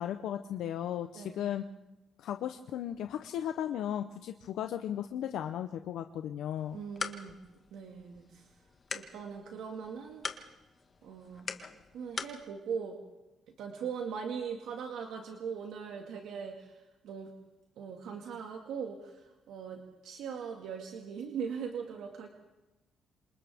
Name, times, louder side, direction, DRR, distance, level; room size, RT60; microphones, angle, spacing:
voice 1, 0.0-1.6 2.2-6.8, left 10 dB, 80° left, 7 dB, 0.8 m, -36 dB
sound 1, 6.6-12.4, left 4 dB, 40° left, 1.7 m, -43 dB
voice 2, 6.7-7.3 7.7-8.5 8.9-10.5 11.0-11.5 11.9-13.0 13.6-17.3 17.8-22.3, right 6 dB, 80° right, 2 dB, 2.0 m, -40 dB
27.5 x 27.0 x 3.6 m, 1.0 s
cardioid pair, 90°, 0 cm